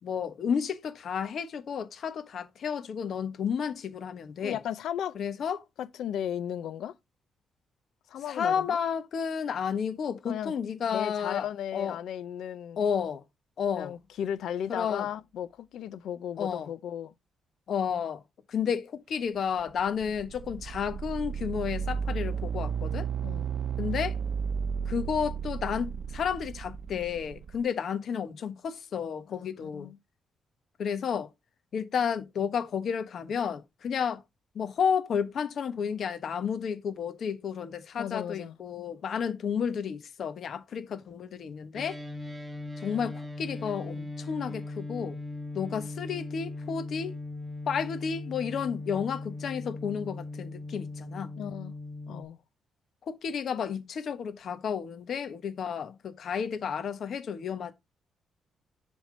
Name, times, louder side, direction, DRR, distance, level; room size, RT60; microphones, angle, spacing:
voice 1, 0.0-4.6 5.1-5.6 8.3-11.5 11.7-12.0 12.8-13.2 13.6-13.9 14.7-15.1 16.4-16.7 17.7-18.2 18.5-23.1 23.8-24.2 24.9-29.9 30.8-31.3 31.7-34.2 34.5-42.0 42.8-45.2 45.5-47.1 47.7-51.3 53.1-57.7, left 7 dB, 60° left, 1.2 m, -31 dB
voice 2, 4.4-5.2 5.8-6.9 8.1-8.8 10.3-10.5 10.9-12.8 13.8-17.1 23.2-23.5 29.3-30.0 38.0-38.5 51.4-51.7 52.1-52.4, left 9 dB, 80° left, 0.7 m, -35 dB
sound 1, 19.6-27.6, right 7 dB, 50° right, 0.7 m, -33 dB
sound 2, 41.7-52.2, left 2 dB, 20° right, 1.2 m, -39 dB
7.2 x 3.6 x 5.1 m
cardioid pair, 125°, 0 cm